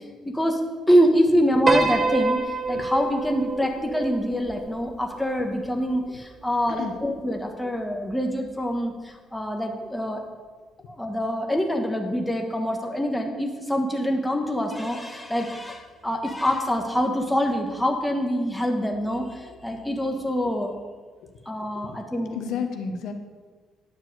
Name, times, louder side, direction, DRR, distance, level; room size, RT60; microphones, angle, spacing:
voice 1, 0.9-2.4 2.7-8.9 9.3-10.2 10.9-19.3 19.6-20.7 21.5-22.4, equal, 5° left, 2 dB, 1.3 m, -25 dB
Piano, 1.7-6.1, right 3 dB, 25° right, 0.7 m, -27 dB
voice 2, 22.3-23.1, left 6 dB, 80° left, 5 dB, 1.0 m, -32 dB
10.0 x 4.7 x 7.8 m, 1.4 s
cardioid pair, 110°, 0 cm